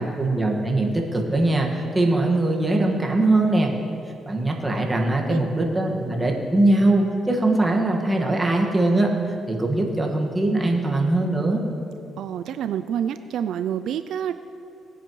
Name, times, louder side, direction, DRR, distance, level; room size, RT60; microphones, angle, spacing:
voice 1, 0.0-3.7 4.2-9.1 9.5-11.6, right 2 dB, 20° right, 0 dB, 1.7 m, -21 dB
voice 2, 12.2-14.3, right 9 dB, 75° right, 10 dB, 0.3 m, -28 dB
18.5 x 9.9 x 3.2 m, 2.6 s
cardioid pair, 90°, 0 cm